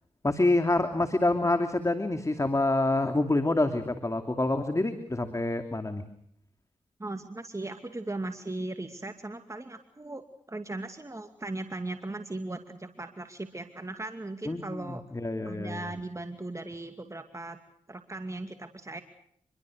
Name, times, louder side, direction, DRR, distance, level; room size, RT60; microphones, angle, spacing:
voice 1, 0.2-6.0 14.4-15.9, left 2 dB, 25° left, 7 dB, 2.7 m, -27 dB
voice 2, 7.0-10.2 10.5-15.0 15.4-17.6 17.9-19.0, right 2 dB, 25° right, 7 dB, 2.5 m, -38 dB
26.5 x 23.0 x 6.5 m, 0.70 s
supercardioid pair, 40°, 13 cm